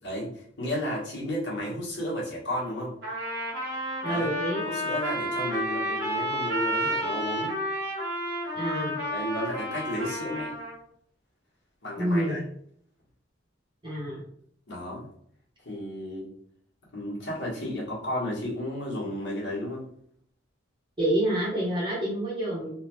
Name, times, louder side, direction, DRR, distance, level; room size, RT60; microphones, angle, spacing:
voice 1, 0.0-2.9 4.1-4.3 4.6-7.6 9.1-10.5 11.8-12.4 14.7-15.1 15.6-16.3 16.9-19.9, equal, 65° left, -6 dB, 1.3 m, -33 dB
Trumpet, 3.0-10.8, equal, 65° right, 1.2 m, -31 dB
voice 2, 4.0-4.6 8.5-9.0 12.0-12.4 13.8-14.2 21.0-22.7, right 1 dB, 25° right, -6 dB, 0.9 m, -28 dB
3.2 x 2.3 x 3.0 m, 0.65 s
head